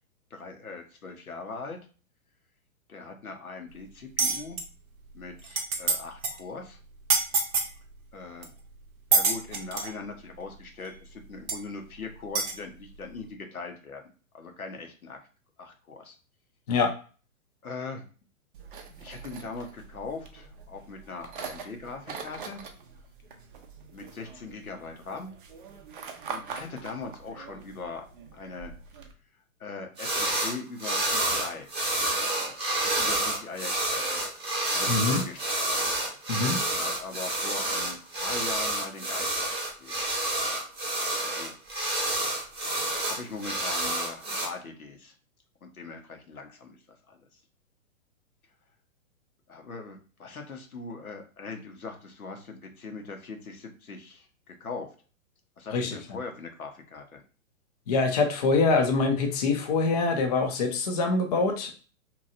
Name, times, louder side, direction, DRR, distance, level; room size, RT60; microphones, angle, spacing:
voice 1, 0.3-1.8 2.9-4.6 5.1-6.8 8.1-8.5 9.1-14.0 14.3-15.2 15.6-16.2 17.6-18.0 19.0-22.6 23.9-25.3 26.3-28.1 28.3-28.7 29.6-31.7 32.4-34.2 34.7-35.8 36.7-39.5 39.8-39.9 41.2-41.5 43.0-45.1 45.6-46.8 47.1-47.3 49.5-54.9 55.6-57.2, left 4 dB, 90° left, 3 dB, 0.8 m, -40 dB
sound 1, 4.2-4.6 5.2-5.3 5.4-6.0 6.2-6.4 7.1-7.7 8.4-8.5 9.1-9.9 10.8-10.9 11.5-11.6 12.3-12.5, right 4 dB, 80° right, 0.7 m, -25 dB
sound 2, 18.5-29.1, right 5 dB, 40° right, 0.4 m, -44 dB
sound 3, 30.0-30.5 30.8-44.4, right 1 dB, 15° right, 0.8 m, -29 dB
voice 2, 34.9-35.2 36.3-36.6 55.7-55.9 57.9-61.7, left 3 dB, 30° left, 3 dB, 0.4 m, -24 dB
2.8 x 2.3 x 2.6 m, 0.37 s
figure-of-eight pair, 115°, 42 cm